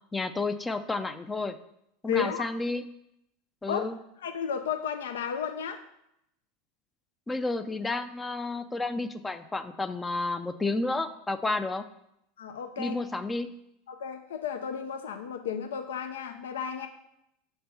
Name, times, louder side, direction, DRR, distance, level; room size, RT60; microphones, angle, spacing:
voice 1, 0.1-1.5 2.0-2.9 3.6-4.0 7.3-11.8 12.8-13.5, left 3 dB, 15° left, 9 dB, 0.4 m, -31 dB
voice 2, 2.1-2.5 3.7-3.9 4.2-5.8 12.4-13.0 13.9-16.9, left 8 dB, 75° left, 7 dB, 0.5 m, -33 dB
5.8 x 3.3 x 5.4 m, 0.78 s
hypercardioid pair, 85°, 0 cm